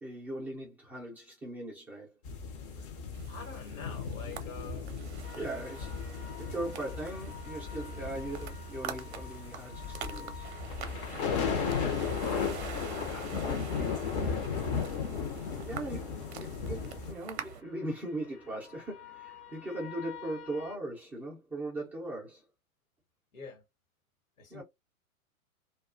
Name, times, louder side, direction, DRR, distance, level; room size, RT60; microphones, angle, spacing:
voice 1, 0.0-2.1 5.3-10.5 15.5-22.4 24.5-24.6, right 1 dB, 5° right, 0.4 m, -39 dB
sound 1, 2.3-17.1, left 6 dB, 40° left, 0.6 m, -36 dB
sound 2, 3.1-17.6, right 9 dB, 50° right, 0.6 m, -46 dB
voice 2, 3.2-4.9 11.5-14.5 23.3-23.6 24.4-24.6, left 5 dB, 65° left, 1.2 m, -46 dB
sound 3, 5.2-20.8, left 7 dB, 90° left, 1.0 m, -52 dB
2.3 x 2.3 x 2.4 m
figure-of-eight pair, 105°, 43 cm